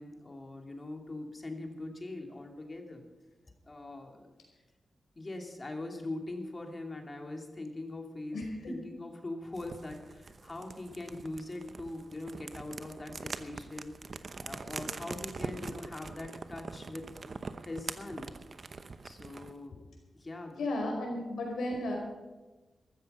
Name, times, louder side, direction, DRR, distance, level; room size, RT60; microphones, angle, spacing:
voice 1, 0.0-3.0 3.6-4.3 5.2-17.1 17.6-18.3 19.0-19.8 20.1-20.7, left 2 dB, 35° left, 3 dB, 2.6 m, -42 dB
voice 2, 8.3-8.7 20.6-22.0, left 1 dB, 90° left, 0 dB, 5.1 m, -34 dB
sound 1, 9.5-19.6, right 4 dB, 55° right, 0.9 m, -43 dB
14.5 x 13.5 x 5.6 m, 1.2 s
cardioid pair, 60°, 0 cm